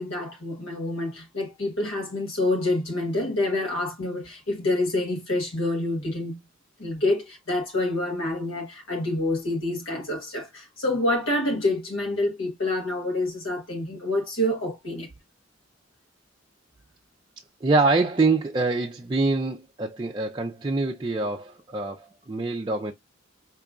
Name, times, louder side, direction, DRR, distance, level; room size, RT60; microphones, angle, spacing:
voice 1, 0.0-6.4 6.8-15.1, left 1 dB, 85° left, 1.3 m, -27 dB
voice 2, 17.6-22.9, right 3 dB, 25° right, 0.4 m, -25 dB
4.8 x 3.0 x 2.4 m
head